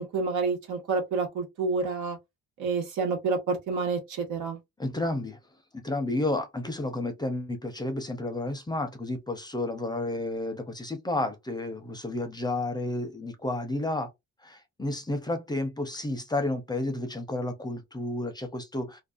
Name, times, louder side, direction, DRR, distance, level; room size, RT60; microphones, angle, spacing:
voice 1, 0.0-2.2 2.6-4.6, right 4 dB, 80° right, 1.3 m, -29 dB
voice 2, 4.8-5.4 5.7-14.1 14.4-19.0, left 2 dB, 15° left, 0.6 m, -31 dB
2.6 x 2.3 x 2.4 m
cardioid pair, 90°, 30 cm